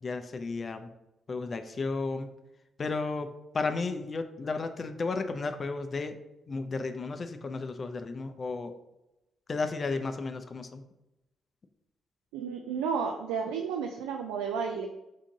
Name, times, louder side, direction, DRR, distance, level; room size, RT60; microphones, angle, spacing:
voice 1, 0.0-0.9 1.3-2.3 2.8-3.3 3.5-6.2 6.5-8.7 9.5-10.8, left 3 dB, 45° left, 8 dB, 0.4 m, -33 dB
voice 2, 12.3-14.9, right 6 dB, 90° right, 3 dB, 0.3 m, -32 dB
3.7 x 3.6 x 3.8 m, 0.93 s
hypercardioid pair, 45°, 0 cm